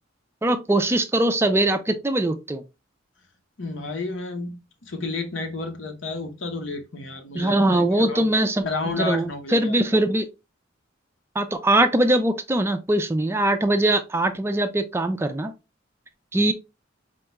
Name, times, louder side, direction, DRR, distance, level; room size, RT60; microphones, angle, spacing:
voice 1, 0.4-2.6 7.3-10.3 11.4-15.5 16.3-16.5, right 1 dB, 15° right, 0.3 m, -22 dB
voice 2, 3.6-8.3 8.6-9.8, left 3 dB, 75° left, 0.9 m, -31 dB
4.2 x 2.3 x 3.0 m
head